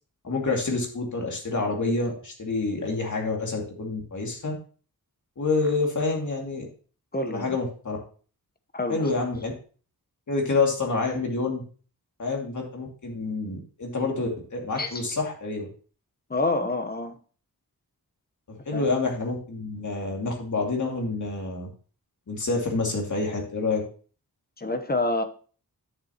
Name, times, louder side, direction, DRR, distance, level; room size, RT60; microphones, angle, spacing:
voice 1, 0.2-4.5 5.4-6.6 7.3-8.0 8.9-9.5 10.3-11.6 12.2-15.7 18.5-21.7 22.3-23.8, left 3 dB, 55° left, 1 dB, 2.5 m, -28 dB
voice 2, 7.1-7.6 8.7-9.1 14.8-15.0 16.3-17.2 18.7-18.9 24.6-25.2, left 2 dB, 25° left, 7 dB, 1.0 m, -27 dB
11.0 x 6.6 x 3.0 m, 0.39 s
wide cardioid pair, 115°, 37 cm